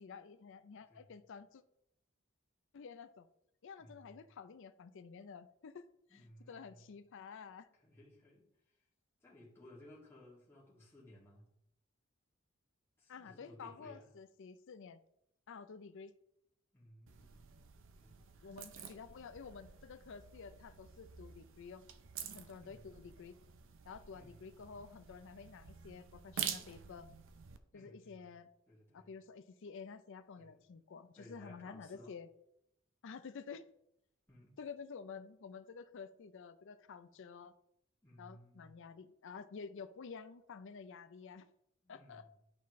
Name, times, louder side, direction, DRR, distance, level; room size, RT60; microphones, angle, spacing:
voice 1, 0.0-1.6 2.7-3.3 3.6-5.8 6.1-6.2 6.5-7.7 13.1-15.0 15.5-16.1 18.4-21.8 22.3-23.4 23.8-27.1 27.7-28.5 28.9-32.3 33.0-33.7 34.6-37.5 38.2-41.5 41.9-42.3, left 5 dB, 65° left, 10 dB, 0.5 m, -50 dB
voice 2, 3.8-4.2 6.1-6.9 7.8-8.8 9.2-11.5 13.0-14.1 16.7-18.3 18.7-18.9 22.6-23.0 24.1-24.4 27.7-28.3 28.7-29.1 30.4-30.7 31.2-32.1 34.3-34.6 38.0-38.8 41.8-42.3, left 1 dB, 10° left, -7 dB, 2.1 m, -59 dB
sound 1, 17.1-27.6, right 8 dB, 65° right, 0.6 m, -48 dB
11.5 x 4.2 x 3.1 m, 0.77 s
head